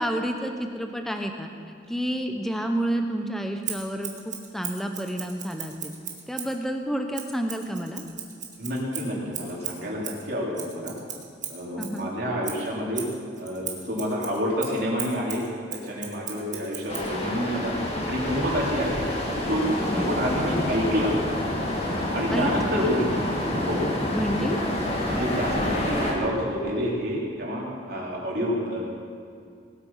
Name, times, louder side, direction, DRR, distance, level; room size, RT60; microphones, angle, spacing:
voice 1, 0.0-1.5 1.9-5.9 6.3-8.0 11.8-12.1 19.9-20.2 22.3-22.5 22.8-22.9 24.1-24.6, right 1 dB, ahead, 4 dB, 0.8 m, -29 dB
Scissors, 3.6-6.6 7.1-12.0 12.4-17.1, right 8 dB, 40° right, 1.6 m, -37 dB
voice 2, 8.6-10.9 11.5-13.1 13.4-17.7 18.0-19.0 19.4-21.1 22.1-23.3 23.6-23.8 24.3-24.5 25.0-28.8, equal, 55° right, -4 dB, 3.4 m, -28 dB
sound 1, 16.9-26.1, left 1 dB, 35° left, 2.2 m, -28 dB
19.5 x 8.7 x 5.6 m, 2.3 s
head